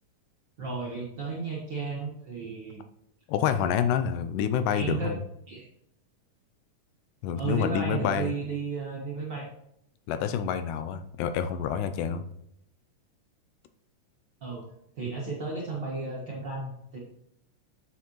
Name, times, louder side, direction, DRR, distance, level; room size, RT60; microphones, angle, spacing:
voice 1, 0.6-2.8 4.7-5.2 5.5-5.7 7.4-9.5 14.4-14.6 14.9-17.0, right 4 dB, 60° right, -4 dB, 1.2 m, -33 dB
voice 2, 3.3-5.2 7.2-8.3 10.1-12.3, left 8 dB, 80° left, 10 dB, 2.1 m, -28 dB
8.0 x 7.1 x 3.0 m, 0.75 s
omnidirectional pair, 3.8 m